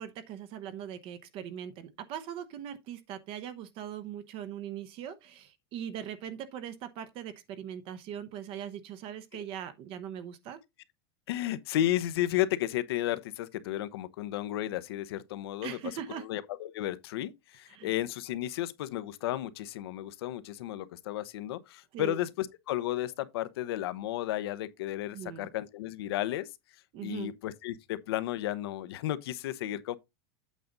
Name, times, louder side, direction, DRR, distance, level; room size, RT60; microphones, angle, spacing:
voice 1, 0.0-10.6 15.6-16.2 17.7-17.9 21.9-22.2 25.1-25.5 26.9-27.3, right 9 dB, 45° right, 1.0 m, -40 dB
voice 2, 11.3-26.5 27.0-30.0, left 13 dB, 75° left, 0.9 m, -33 dB
8.5 x 5.2 x 3.9 m
supercardioid pair, 145°, 13 cm